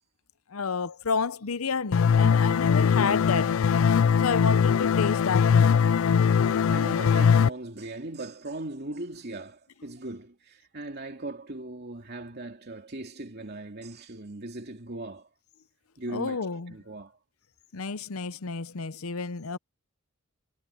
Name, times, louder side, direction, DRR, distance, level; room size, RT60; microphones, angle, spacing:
voice 1, 0.5-3.5 4.2-5.7 16.1-16.7 17.7-19.6, left 5 dB, 85° left, 0.8 m, -30 dB
sound 1, 1.9-7.5, left 6 dB, 65° left, 0.4 m, -21 dB
voice 2, 6.4-15.3 16.0-16.4 16.7-17.2, right 2 dB, 50° right, 2.6 m, -39 dB
head